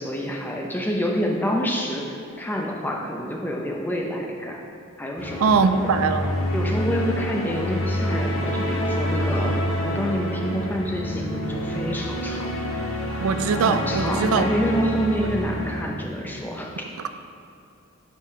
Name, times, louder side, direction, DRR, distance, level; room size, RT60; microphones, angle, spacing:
voice 1, 0.0-4.6 5.0-5.5 5.8-5.9 6.5-12.5 13.6-16.9, equal, 10° left, 0 dB, 0.6 m, -27 dB
sound 1, 5.2-15.8, equal, 65° left, 1.1 m, -27 dB
voice 2, 5.4-6.3 13.2-14.4, right 5 dB, 75° right, 9 dB, 0.4 m, -21 dB
9.4 x 5.2 x 3.2 m, 2.6 s
head